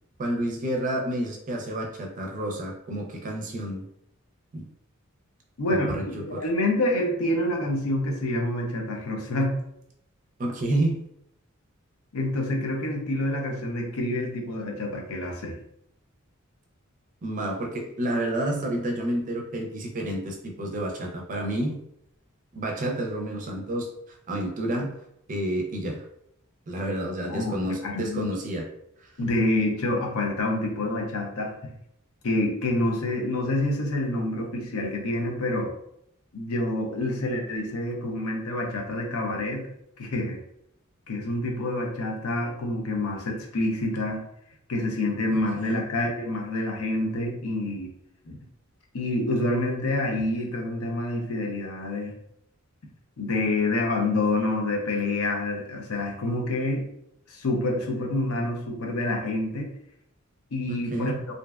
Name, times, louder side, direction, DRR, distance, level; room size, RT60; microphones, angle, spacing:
voice 1, 0.2-3.8 4.5-4.7 5.7-6.4 10.4-11.0 17.2-21.8 22.5-25.0 25.3-26.1 26.7-28.7 29.0-29.1 45.3-45.8 60.7-61.3, right 1 dB, 40° right, 1 dB, 0.4 m, -30 dB
voice 2, 5.6-5.9 6.3-9.6 12.1-15.5 27.3-28.3 29.2-31.5 32.2-35.7 36.3-39.7 40.0-40.4 41.1-44.2 44.7-47.9 48.3-48.4 48.9-52.1 53.2-56.8 57.3-59.7 60.5-61.1, left 1 dB, 85° left, 1 dB, 0.6 m, -27 dB
2.5 x 2.2 x 2.2 m, 0.74 s
head